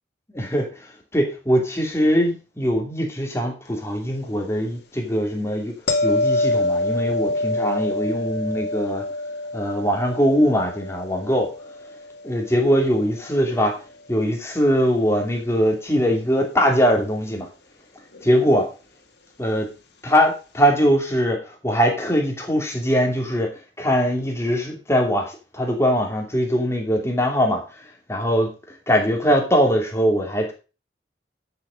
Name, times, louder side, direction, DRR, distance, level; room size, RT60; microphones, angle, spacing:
voice 1, 0.3-0.9 1.1-5.7 6.0-9.1 9.5-11.5 12.2-13.8 14.1-17.5 18.2-18.7 19.4-19.7 20.0-27.6 28.1-28.5 28.9-30.5, equal, 15° left, 2 dB, 2.5 m, -21 dB
sound 1, 5.9-12.9 18.1-18.3, left 2 dB, 65° left, 2.0 m, -26 dB
10.5 x 6.9 x 5.1 m, 0.32 s
head